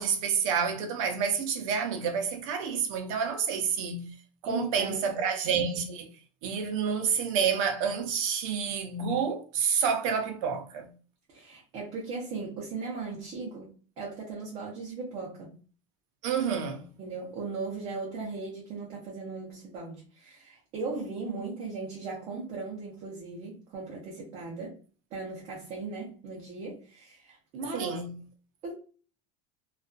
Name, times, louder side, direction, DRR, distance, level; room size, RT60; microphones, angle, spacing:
voice 1, 0.0-4.1 4.4-6.1 6.4-10.9 16.2-16.8 27.7-28.1, right 6 dB, 75° right, 0.6 m, -29 dB
voice 2, 4.4-5.2 11.3-15.5 17.0-24.8 25.1-28.0 28.6-28.7, right 3 dB, 35° right, 0.6 m, -38 dB
2.5 x 2.4 x 2.3 m
cardioid pair, 170°, 17 cm